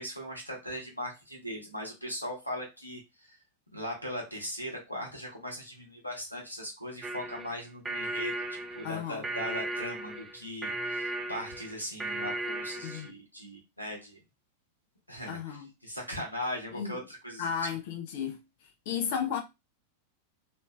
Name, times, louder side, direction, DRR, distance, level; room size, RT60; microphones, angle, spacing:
voice 1, 0.0-3.4 3.7-14.2 15.1-17.7, equal, 85° left, 0.9 m, -39 dB
sound 1, 7.0-13.1, right 2 dB, 15° right, 0.4 m, -36 dB
voice 2, 8.8-9.2 12.8-13.1 15.3-15.7 16.7-17.0 17.4-18.4 18.9-19.4, left 7 dB, 50° left, 0.6 m, -33 dB
3.1 x 2.5 x 2.2 m
figure-of-eight pair, 90°, 0 cm